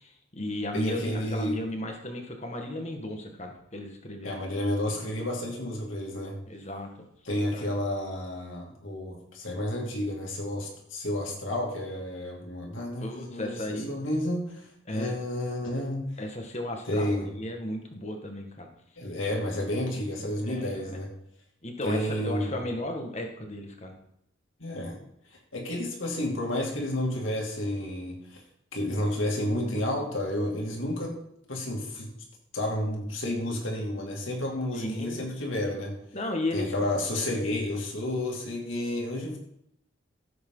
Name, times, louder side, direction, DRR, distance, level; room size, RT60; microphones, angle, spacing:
voice 1, 0.0-4.4 6.5-6.9 7.5-7.7 13.0-13.9 14.9-15.2 16.2-18.7 20.4-21.0 21.6-23.9 34.7-35.3 36.1-36.7 37.2-37.3, left 1 dB, 35° left, 3 dB, 1.8 m, -35 dB
voice 2, 0.7-1.6 4.2-6.4 7.2-16.1 16.8-17.3 19.0-21.1 21.8-22.5 24.6-25.0 25.3-28.4 28.7-31.2 31.5-32.1 32.5-36.0 36.5-39.4, left 1 dB, 75° left, -1 dB, 2.7 m, -31 dB
15.0 x 7.8 x 4.0 m, 0.75 s
head